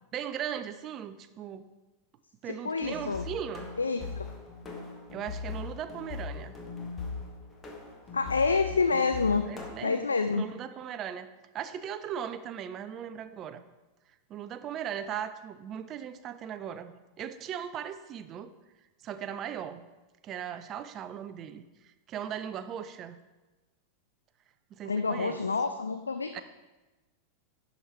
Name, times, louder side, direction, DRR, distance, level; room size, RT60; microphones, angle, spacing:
voice 1, 0.0-1.7 2.4-3.7 5.1-6.6 9.4-11.3 11.5-13.6 14.3-18.5 19.0-19.8 20.2-23.2 24.7-25.4 26.3-26.4, right 9 dB, 30° right, 12 dB, 0.5 m, -38 dB
voice 2, 2.5-3.2 3.8-4.3 8.1-9.5 9.8-10.4 24.9-26.4, left 4 dB, 75° left, 9 dB, 0.3 m, -28 dB
sound 1, 2.8-9.7, left 4 dB, 20° left, 1.2 m, -40 dB
11.0 x 5.1 x 4.2 m, 1.1 s
figure-of-eight pair, 90°, 0 cm